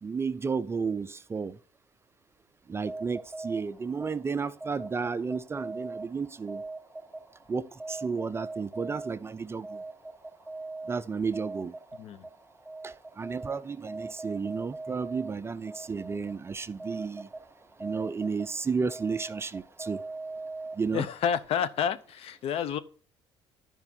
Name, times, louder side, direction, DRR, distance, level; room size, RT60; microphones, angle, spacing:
voice 1, 0.0-1.5 2.7-6.6 7.5-9.8 10.9-11.7 12.8-17.3 17.8-20.0 20.8-21.1, right 5 dB, 25° right, 0.5 m, -32 dB
sound 1, 2.7-21.2, right 3 dB, ahead, 2.1 m, -42 dB
voice 2, 20.9-22.8, left 8 dB, 65° left, 0.9 m, -29 dB
11.0 x 5.3 x 4.4 m
cardioid pair, 100°, 11 cm